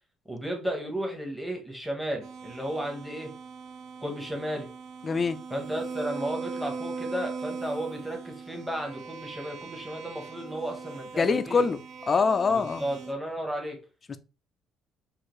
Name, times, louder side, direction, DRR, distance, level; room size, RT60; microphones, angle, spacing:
voice 1, 0.3-3.3 4.0-4.7 5.5-11.7 12.5-13.8, right 1 dB, 5° right, 0.9 m, -34 dB
sound 1, 2.2-13.1, right 5 dB, 55° right, 0.6 m, -40 dB
voice 2, 5.0-5.4 11.2-11.8 12.1-12.8 14.1-14.2, left 5 dB, 25° left, 0.4 m, -24 dB
6.4 x 2.5 x 3.1 m
cardioid pair, 170°, 0 cm